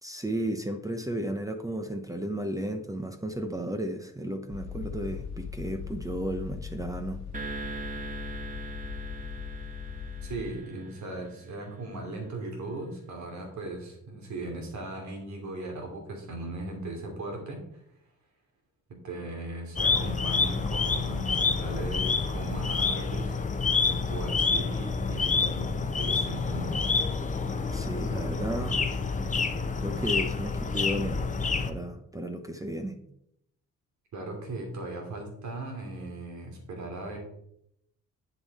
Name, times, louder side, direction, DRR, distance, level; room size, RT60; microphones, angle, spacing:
voice 1, 0.0-7.2 27.7-28.8 29.8-31.2 31.7-33.0, right 1 dB, 10° right, 6 dB, 0.8 m, -33 dB
sound 1, 4.5-10.4, left 6 dB, 65° left, 1.4 m, -39 dB
sound 2, 7.3-11.8, right 4 dB, 25° right, 1.2 m, -41 dB
voice 2, 10.2-17.8 18.9-23.4 23.8-26.7 34.1-37.2, right 2 dB, 70° right, 2 dB, 2.9 m, -38 dB
sound 3, 19.8-31.7, left 4 dB, 25° left, 0.8 m, -28 dB
8.1 x 6.9 x 4.2 m, 0.75 s
cardioid pair, 90°, 30 cm